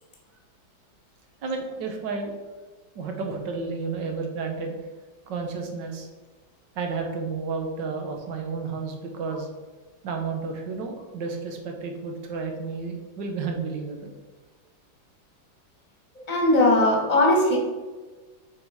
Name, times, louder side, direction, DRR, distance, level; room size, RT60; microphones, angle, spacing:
voice 1, 1.4-2.6 3.0-4.8 5.3-6.1 6.8-9.5 10.0-14.1, right 4 dB, 65° right, 3 dB, 1.6 m, -31 dB
voice 2, 16.2-17.6, left 1 dB, 20° left, 0 dB, 1.4 m, -19 dB
6.6 x 4.7 x 4.9 m, 1.3 s
omnidirectional pair, 2.1 m